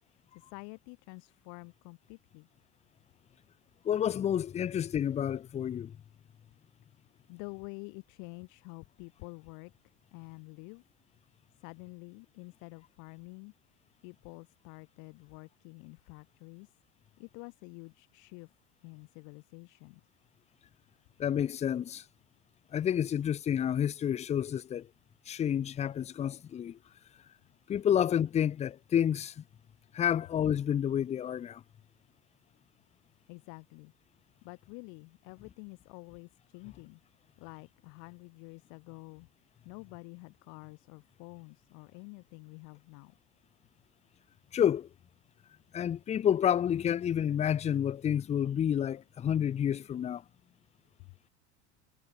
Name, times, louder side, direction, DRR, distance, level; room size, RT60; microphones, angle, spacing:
voice 1, 0.1-2.5 7.3-9.7 10.1-10.8 11.6-13.5 14.0-16.7 17.2-18.5 18.8-20.0 33.3-33.9 34.4-37.0 37.4-39.3 39.6-43.2 51.0-51.2, left 35 dB, 55° left, 4.0 m, -48 dB
voice 2, 3.8-5.9 21.2-22.0 22.7-24.9 25.3-26.8 27.7-29.4 29.9-31.6 44.5-44.9 45.7-50.2, left 9 dB, 20° left, 0.8 m, -29 dB
supercardioid pair, 155°, 36 cm